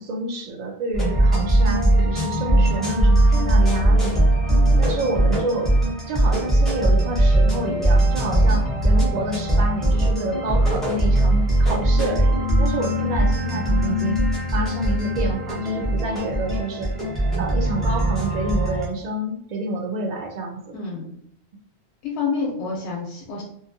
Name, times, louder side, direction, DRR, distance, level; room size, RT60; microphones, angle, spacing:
voice 1, 0.0-4.2 4.8-5.7 6.1-14.2 14.5-16.9 17.4-20.7, right 2 dB, 55° right, 3 dB, 0.5 m, -28 dB
sound 1, 0.9-18.9, right 1 dB, ahead, 0.5 m, -20 dB
voice 2, 20.7-21.1 22.0-23.4, left 4 dB, 85° left, -2 dB, 0.9 m, -28 dB
2.5 x 2.3 x 2.6 m, 0.70 s
omnidirectional pair, 1.1 m